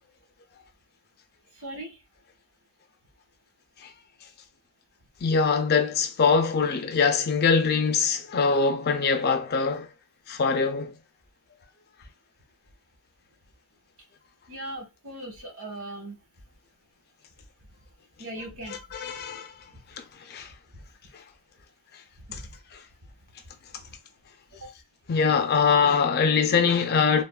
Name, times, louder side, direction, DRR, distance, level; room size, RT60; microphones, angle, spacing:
voice 1, 1.5-2.0 14.5-16.2 18.2-18.8 20.7-20.8 22.2-22.6 23.8-24.0 24.5-24.7, right 1 dB, 65° right, 1.1 m, -39 dB
voice 2, 5.2-9.9 10.3-11.0 18.9-19.5 20.0-20.5 22.3-22.4 25.1-27.2, left 5 dB, 45° left, 0.5 m, -23 dB
3.4 x 2.2 x 2.3 m
head